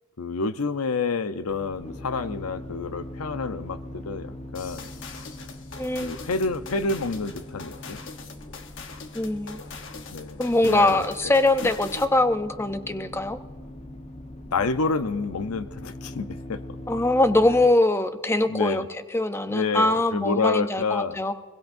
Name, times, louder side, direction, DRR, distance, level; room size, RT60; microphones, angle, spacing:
voice 1, 0.2-4.9 6.0-8.0 10.1-11.3 14.5-16.6 18.5-18.9 19.5-21.2, left 4 dB, 80° left, 11 dB, 0.7 m, -28 dB
sound 1, 1.5-17.7, left 1 dB, 30° left, 1.1 m, -41 dB
sound 2, 4.5-12.2, left 4 dB, 55° left, 1.1 m, -42 dB
voice 2, 5.8-6.1 9.1-9.6 10.4-13.4 16.9-18.8 19.1-21.3, left 2 dB, 10° left, 10 dB, 0.5 m, -22 dB
22.0 x 21.5 x 2.6 m, 1.4 s
head